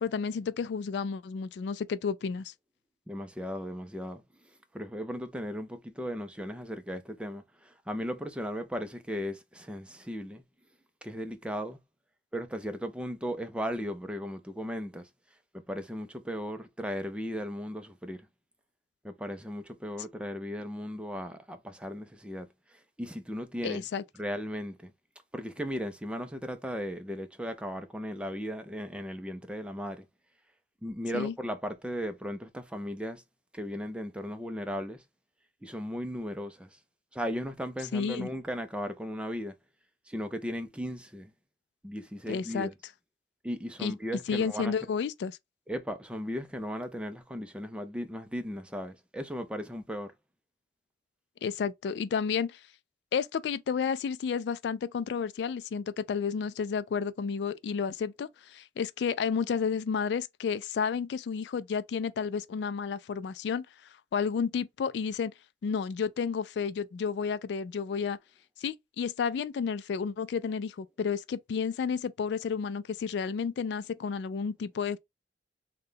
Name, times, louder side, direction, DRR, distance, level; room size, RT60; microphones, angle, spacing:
voice 1, 0.0-2.5 23.6-24.0 31.1-31.3 37.9-38.3 42.3-42.7 43.8-43.9 44.3-45.4 51.4-52.6 53.1-63.7 64.1-65.3 65.6-68.2 68.6-75.0, left 6 dB, 70° left, 0.3 m, -31 dB
voice 2, 3.1-4.2 4.7-10.4 11.0-11.8 12.3-15.1 15.5-18.3 19.0-23.8 24.2-24.9 25.3-30.0 30.8-33.2 33.5-35.0 35.6-36.8 37.1-39.5 40.1-41.3 41.8-42.7 43.4-44.8 45.7-50.1, equal, 5° right, 0.4 m, -36 dB
3.7 x 2.2 x 3.6 m
head